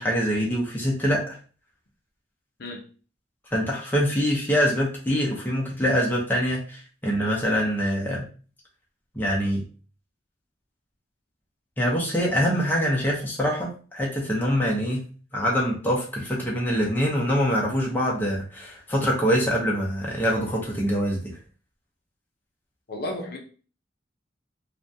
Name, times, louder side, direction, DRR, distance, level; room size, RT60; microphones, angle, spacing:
voice 1, 0.0-1.4 3.5-8.2 9.1-9.6 11.8-15.0 15.3-21.3, equal, 10° left, 0.6 m, -24 dB
voice 2, 22.9-23.4, left 1 dB, 60° left, 0.5 m, -33 dB
2.5 x 2.2 x 2.6 m
head